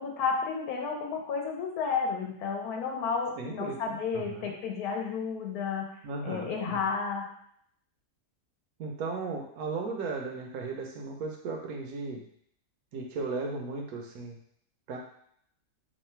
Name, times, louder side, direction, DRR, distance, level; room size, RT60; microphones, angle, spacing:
voice 1, 0.0-5.9 6.2-7.3, left 5 dB, 75° left, 0 dB, 1.2 m, -32 dB
voice 2, 3.4-4.5 6.0-6.9 8.8-12.2 12.9-14.4 14.9-15.0, right 4 dB, 70° right, 1 dB, 1.1 m, -36 dB
3.2 x 2.3 x 4.3 m, 0.67 s
omnidirectional pair, 1.7 m